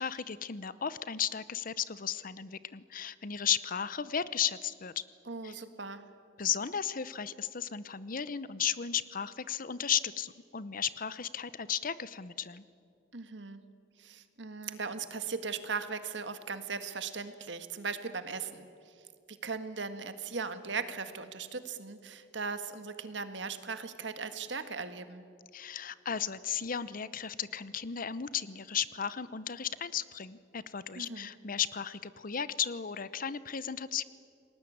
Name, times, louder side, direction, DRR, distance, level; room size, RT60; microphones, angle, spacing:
voice 1, 0.0-5.0 5.4-5.5 6.4-12.6 25.5-34.0, left 8 dB, 50° left, 16 dB, 0.8 m, -35 dB
voice 2, 5.3-6.1 13.1-13.6 14.0-18.7 19.3-25.2 31.0-31.3, right 5 dB, 70° right, 10 dB, 1.7 m, -38 dB
29.5 x 19.5 x 8.7 m, 2.5 s
head